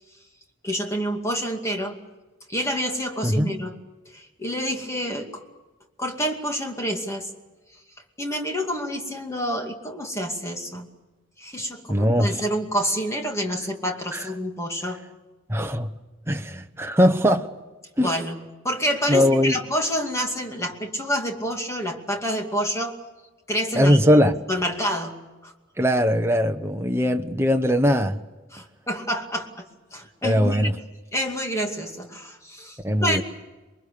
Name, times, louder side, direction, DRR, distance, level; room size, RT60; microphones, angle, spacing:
voice 1, 0.6-2.0 2.5-3.8 4.1-5.4 6.0-7.3 8.2-10.9 11.4-15.0 18.0-23.0 23.5-24.0 24.5-25.2 25.4-25.5 28.5-29.7 29.9-30.7 31.1-33.2, equal, 15° left, 2.4 m, -28 dB
voice 2, 3.2-3.5 11.9-12.4 14.1-14.2 15.5-15.9 16.3-17.5 18.0-18.1 19.1-19.6 23.7-24.3 25.8-28.2 30.2-30.7 32.8-33.2, equal, 10° right, 1.1 m, -20 dB
27.5 x 23.0 x 6.9 m
head